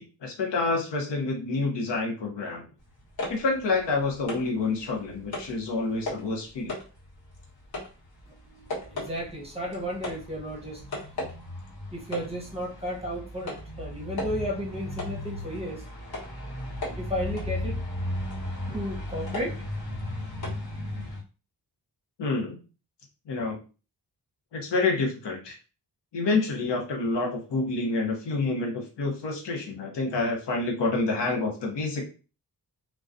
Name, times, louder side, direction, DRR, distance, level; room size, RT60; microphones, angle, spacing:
voice 1, 0.0-2.6 3.3-6.7 22.2-22.6 23.3-23.6 24.5-25.6 26.1-32.0, left 3 dB, 85° left, 1 dB, 0.8 m, -28 dB
sound 1, 2.9-4.6 5.0-5.6 6.0-6.3 6.7-21.2, left 1 dB, 60° left, 1.2 m, -35 dB
voice 2, 8.5-10.8 11.9-15.8 16.8-17.8 18.7-19.6, equal, 15° right, -2 dB, 0.8 m, -33 dB
2.2 x 2.2 x 2.5 m, 0.34 s
wide cardioid pair, 90°, 41 cm